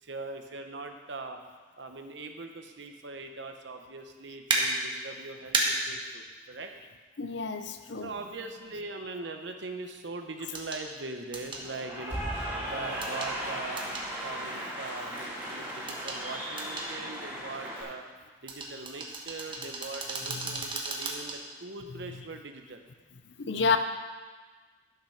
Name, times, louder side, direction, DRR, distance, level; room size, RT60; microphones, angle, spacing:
voice 1, 0.0-1.4 1.8-6.7 8.0-12.2 12.6-13.9 14.2-18.0 18.4-22.8, right 3 dB, 70° right, 5 dB, 1.0 m, -41 dB
sound 1, 4.5-4.6 5.5-5.7 7.7-7.8 10.5-10.8 11.3-11.6 13.0-13.3 13.8-14.1 15.9-16.2 16.6-16.9 18.5-21.4 21.8-21.9, right 3 dB, 25° right, 1.3 m, -32 dB
voice 2, 7.2-8.2 20.3-20.7 22.0-22.4 23.4-23.8, left 5 dB, 65° left, 8 dB, 0.7 m, -31 dB
Cheering / Applause, 11.5-17.8, equal, 10° right, 2.7 m, -36 dB
12.0 x 5.9 x 5.8 m, 1.4 s
head